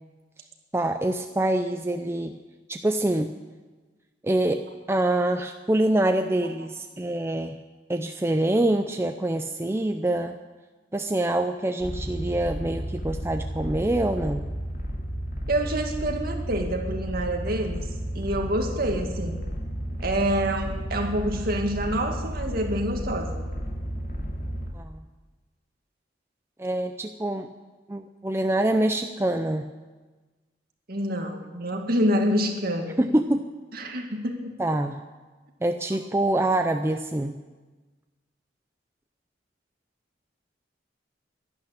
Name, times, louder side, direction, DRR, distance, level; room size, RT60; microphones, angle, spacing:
voice 1, 0.7-2.3 2.7-3.3 4.2-7.6 7.9-10.4 10.9-14.4 24.7-25.0 26.6-27.5 27.9-29.6 33.0-33.5 34.6-35.0 35.6-37.4, right 1 dB, 15° right, 6 dB, 0.5 m, -25 dB
sound 1, 11.8-24.7, equal, 50° left, 2.4 m, -32 dB
voice 2, 15.5-17.9 18.1-19.4 20.0-23.5 30.9-33.0 33.7-34.5, right 1 dB, 50° right, 3 dB, 2.0 m, -27 dB
12.0 x 11.5 x 9.9 m, 1.3 s
head